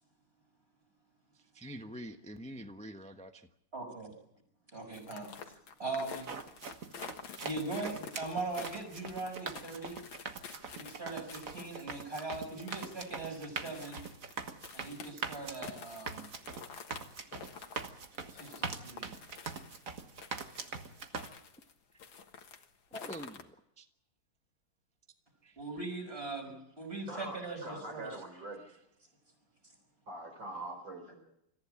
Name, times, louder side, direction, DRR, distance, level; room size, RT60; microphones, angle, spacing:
voice 1, 1.5-3.5 22.9-23.9 25.4-25.6, equal, 5° left, 6 dB, 0.6 m, -46 dB
voice 2, 3.7-4.2 4.7-5.5 5.8-6.3 7.4-10.0 10.7-14.0 14.7-16.3 18.3-19.1 25.6-28.2, right 3 dB, 25° right, 3 dB, 6.0 m, -40 dB
sound 1, 4.9-21.7 22.0-23.4, left 6 dB, 65° left, 2.2 m, -50 dB
sound 2, 6.0-21.3, right 5 dB, 45° right, 1.7 m, -43 dB
voice 3, 27.1-28.7 30.1-31.2, right 1 dB, 60° right, 3 dB, 6.4 m, -43 dB
27.0 x 15.0 x 8.7 m, 0.80 s
omnidirectional pair, 2.3 m